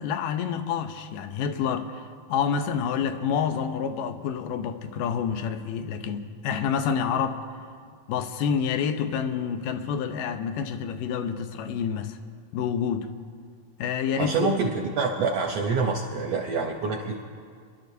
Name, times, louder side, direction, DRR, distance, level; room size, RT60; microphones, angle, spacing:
voice 1, 0.0-7.4 8.1-12.2 12.5-13.1 13.8-14.5, left 7 dB, 90° left, 2.4 m, -28 dB
voice 2, 14.2-17.2, right 4 dB, 75° right, 1.5 m, -26 dB
28.5 x 12.0 x 2.7 m
omnidirectional pair, 3.8 m